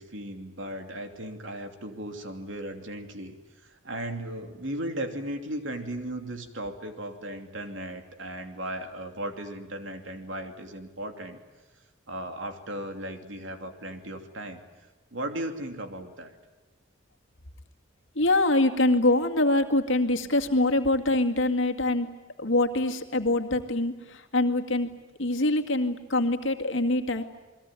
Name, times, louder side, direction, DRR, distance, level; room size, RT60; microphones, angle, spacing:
voice 1, 0.0-3.3 3.8-11.4 12.1-14.6 15.1-16.3, right 1 dB, 75° right, 5 dB, 2.9 m, -36 dB
voice 2, 18.2-22.1 22.4-24.9 25.2-27.2, left 2 dB, 75° left, 5 dB, 2.1 m, -24 dB
29.0 x 21.5 x 9.1 m, 1.2 s
head